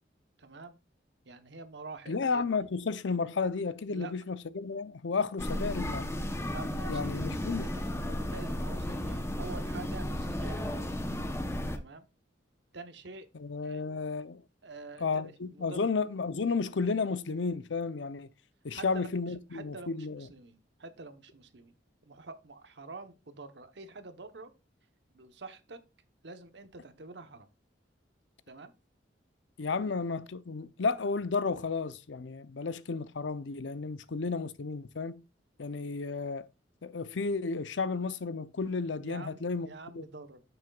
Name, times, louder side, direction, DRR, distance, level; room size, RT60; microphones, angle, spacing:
voice 1, 0.4-0.8 1.2-2.5 3.9-4.1 6.4-10.9 11.7-12.1 12.7-13.3 13.6-13.8 14.6-15.9 18.7-21.7 22.0-24.5 25.1-25.8 26.2-27.5 28.5-28.7 29.8-30.0 39.0-40.4, right 3 dB, 65° right, 1.0 m, -47 dB
voice 2, 2.1-6.1 6.9-7.6 13.4-14.4 15.0-18.3 18.6-20.3 29.6-35.2 35.6-36.5 36.8-39.7 39.9-40.0, left 4 dB, 80° left, 0.6 m, -32 dB
sound 1, 5.4-11.8, left 1 dB, 15° left, 0.8 m, -34 dB
9.3 x 7.9 x 2.4 m
head